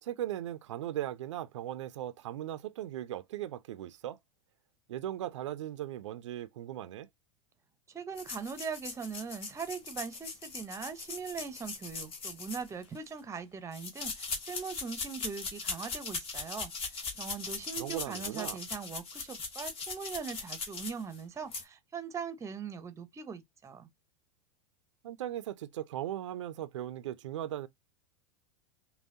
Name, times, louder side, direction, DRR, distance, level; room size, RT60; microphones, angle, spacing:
voice 1, 0.0-4.2 4.9-7.1 17.8-18.6 25.0-27.7, right 12 dB, 70° right, 0.5 m, -38 dB
voice 2, 7.9-23.9, right 6 dB, 20° right, 0.7 m, -41 dB
sound 1, 8.2-13.1 13.7-21.2 21.5-21.6, left 4 dB, 35° left, 1.3 m, -40 dB
5.5 x 2.2 x 2.7 m
hypercardioid pair, 90°, 16 cm